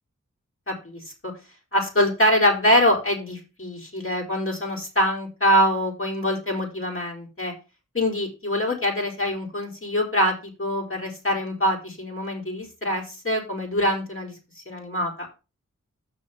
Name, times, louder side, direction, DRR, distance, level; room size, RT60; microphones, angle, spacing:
voice 1, 0.7-1.3 1.7-7.5 7.9-14.3 14.7-15.1, equal, 40° left, 0 dB, 4.8 m, -24 dB
6.4 x 6.4 x 7.5 m, 0.30 s
wide cardioid pair, 45°, 32 cm